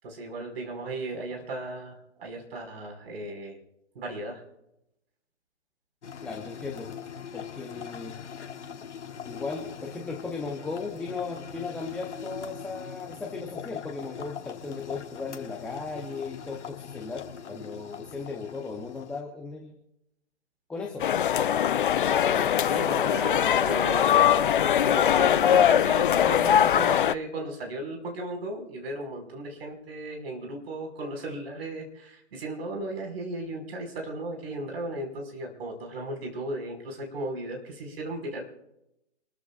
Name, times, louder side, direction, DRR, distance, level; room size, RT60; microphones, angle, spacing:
voice 1, 0.0-3.6 4.0-4.4 22.0-38.4, right 1 dB, 55° right, 2 dB, 5.4 m, -36 dB
sound 1, 6.0-19.2, left 7 dB, 70° left, 1.6 m, -41 dB
voice 2, 6.2-6.9 7.3-8.2 9.2-19.7 20.7-21.1, left 4 dB, 5° left, 0 dB, 0.8 m, -36 dB
sound 2, 21.0-27.1, left 10 dB, 45° left, 0.5 m, -22 dB
29.0 x 14.0 x 2.5 m, 0.86 s
hypercardioid pair, 145°, 36 cm